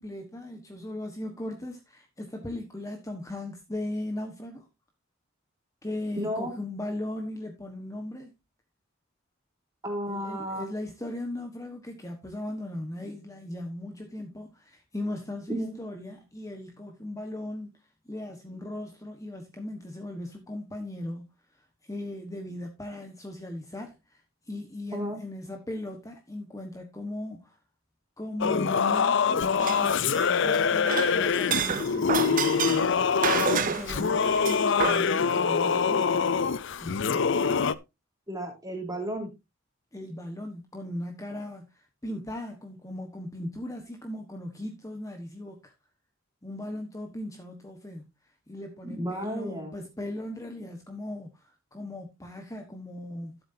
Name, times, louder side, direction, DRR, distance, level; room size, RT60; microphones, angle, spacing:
voice 1, 0.0-4.7 5.8-8.3 10.1-17.7 18.0-21.2 21.8-24.2 24.5-27.6 28.2-32.9 33.6-36.3 36.8-37.3 39.9-45.7 46.4-48.1 48.5-53.4, left 1 dB, 15° left, 1.4 m, -38 dB
voice 2, 6.2-6.6 9.8-10.6 15.5-15.8 24.9-25.2 38.3-39.3 48.8-49.7, equal, 20° right, 3.8 m, -33 dB
Singing / Musical instrument, 28.4-37.8, left 6 dB, 60° left, 0.6 m, -25 dB
sound 1, 29.6-30.6 30.9-35.0, right 7 dB, 40° right, 0.7 m, -29 dB
13.5 x 7.8 x 2.8 m
head